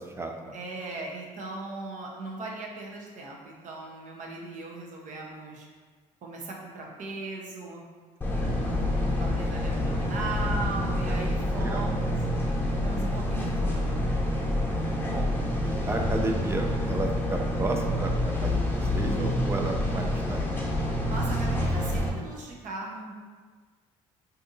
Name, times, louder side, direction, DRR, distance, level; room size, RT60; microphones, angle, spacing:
voice 1, 0.0-0.6 8.2-8.4 11.6-11.9 14.7-15.3 15.6-20.5, right 2 dB, 20° right, 3 dB, 0.5 m, -33 dB
voice 2, 0.5-5.7 6.2-7.8 8.4-12.2 12.8-14.1 19.0-19.4 21.1-23.1, right 3 dB, 60° right, -1 dB, 0.8 m, -38 dB
sound 1, 8.2-22.1, left 1 dB, 15° left, 0.8 m, -27 dB
2.6 x 2.5 x 3.9 m, 1.5 s
supercardioid pair, 75°, 15 cm